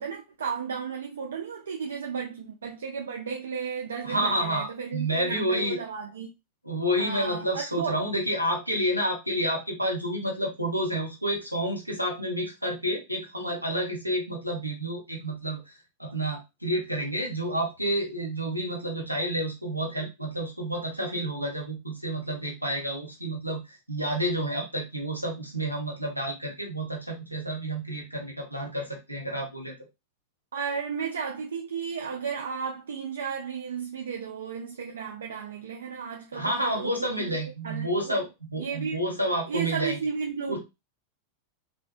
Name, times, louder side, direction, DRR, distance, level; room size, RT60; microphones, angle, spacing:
voice 1, 0.0-6.3 7.0-8.0 30.5-37.4 37.6-38.2 38.5-39.0 39.5-40.6, right 6 dB, 65° right, 0.4 m, -34 dB
voice 2, 4.0-5.8 6.6-29.7 36.3-40.0 40.5-40.6, equal, 90° right, 0.8 m, -30 dB
2.5 x 2.2 x 2.4 m
figure-of-eight pair, 90°, 0 cm